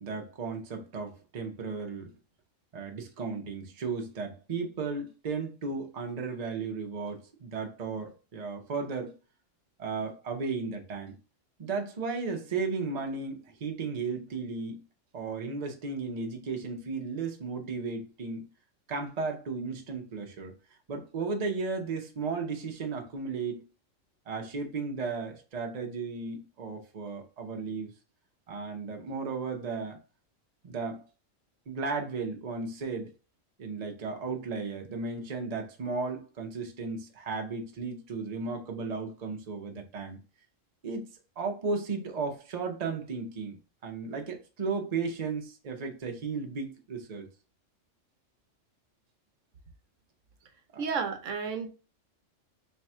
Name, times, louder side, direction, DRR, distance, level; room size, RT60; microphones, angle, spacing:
voice 1, 0.0-2.1 2.7-9.1 9.8-11.2 11.6-14.8 15.1-18.5 18.9-20.5 20.9-23.6 24.3-27.9 28.5-30.0 30.6-31.0 31.7-33.1 33.6-40.2 40.8-41.1 41.4-47.3 50.7-50.8, right 4 dB, 35° right, 0.7 m, -35 dB
voice 2, 50.8-51.7, right 5 dB, 75° right, 1.0 m, -32 dB
3.4 x 2.3 x 4.2 m
omnidirectional pair, 1.3 m